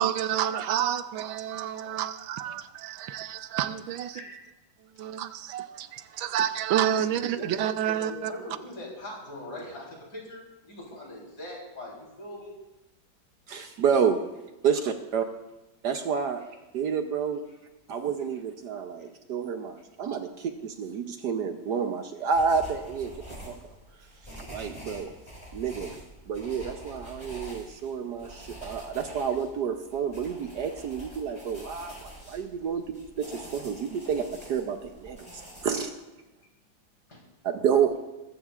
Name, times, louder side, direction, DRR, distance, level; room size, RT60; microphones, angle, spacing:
voice 1, 0.0-4.2 5.0-8.3, right 10 dB, 90° right, 1.5 m, -29 dB
voice 2, 7.0-12.5 37.1-37.2, left 1 dB, 50° left, 4.3 m, -41 dB
voice 3, 13.5-14.2 14.6-15.3 15.8-16.4 16.7-17.4 17.9-23.1 23.5-23.7 24.4-25.1 25.5-25.9 26.3-36.0 37.4-38.0, right 6 dB, 65° right, 1.3 m, -29 dB
sound 1, 22.3-35.8, equal, 15° left, 4.6 m, -46 dB
20.0 x 14.5 x 2.5 m
omnidirectional pair, 2.1 m